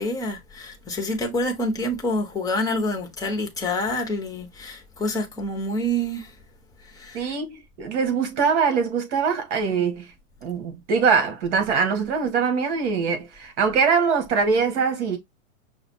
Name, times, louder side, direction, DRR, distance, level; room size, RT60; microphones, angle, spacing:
voice 1, 0.0-6.3 6.9-7.3, left 1 dB, 10° left, 0.9 m, -27 dB
voice 2, 7.1-10.1 10.4-15.2, right 5 dB, 50° right, 1.8 m, -23 dB
5.8 x 2.1 x 4.3 m
hypercardioid pair, 145°, 43 cm